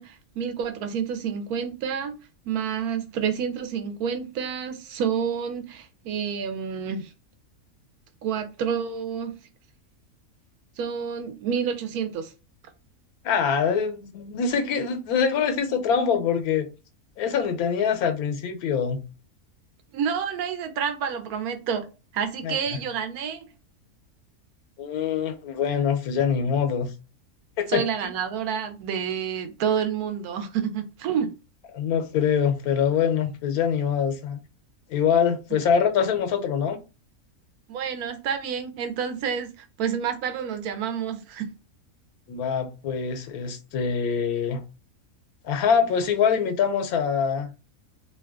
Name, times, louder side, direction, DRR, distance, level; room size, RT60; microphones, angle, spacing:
voice 1, 0.0-2.2 2.4-7.1 8.2-9.4 10.8-12.3 19.9-23.5 27.7-31.3 35.5-35.6 37.7-41.5, right 7 dB, 85° right, 1.1 m, -29 dB
voice 2, 13.2-16.7 17.2-19.0 22.4-22.8 24.8-26.9 27.6-27.8 31.7-34.4 34.9-36.8 42.3-44.6 45.4-47.5, left 7 dB, 85° left, 1.1 m, -24 dB
2.8 x 2.2 x 3.5 m
omnidirectional pair, 1.5 m